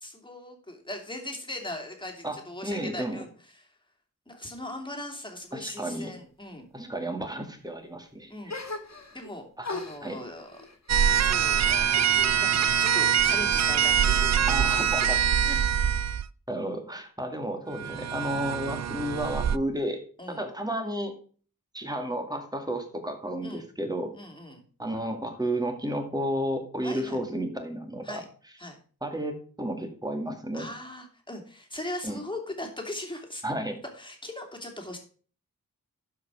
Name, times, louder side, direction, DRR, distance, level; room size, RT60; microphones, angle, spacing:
voice 1, 0.0-3.7 4.3-6.7 8.3-8.5 9.1-10.6 11.1-15.2 20.2-20.4 23.4-23.6 24.1-24.6 26.8-27.2 28.0-28.3 28.6-28.8 30.5-33.4 33.9-35.0, left 1 dB, 15° left, 1 dB, 2.7 m, -39 dB
voice 2, 2.6-3.2 5.5-6.2 6.7-8.7 9.6-9.7 10.0-10.2 14.5-15.2 15.4-15.6 16.5-21.1 21.7-24.1 24.8-28.2 29.0-30.7 32.0-32.2 33.4-33.8, right 1 dB, 10° right, 5 dB, 2.2 m, -32 dB
sound 1, 8.5-9.3 9.6-12.4 12.7-13.5, left 3 dB, 55° left, 2.3 m, -40 dB
sound 2, 10.9-16.3 17.7-19.6, right 8 dB, 55° right, 0.4 m, -24 dB
12.0 x 5.3 x 6.0 m, 0.42 s
wide cardioid pair, 85°, 32 cm